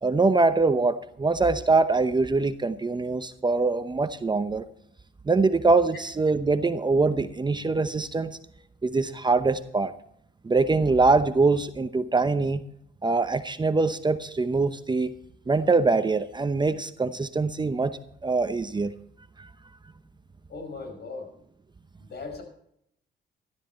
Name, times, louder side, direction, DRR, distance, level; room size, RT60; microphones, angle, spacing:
voice 1, 0.0-4.6 5.3-8.4 8.8-9.9 10.4-12.6 13.0-15.1 15.5-18.9 19.4-19.5, right 3 dB, 20° right, 11 dB, 0.8 m, -23 dB
voice 2, 20.5-21.3 22.0-22.4, left 4 dB, 60° left, 5 dB, 5.3 m, -38 dB
13.5 x 12.5 x 4.3 m, 0.73 s
cardioid pair, 90°, 20 cm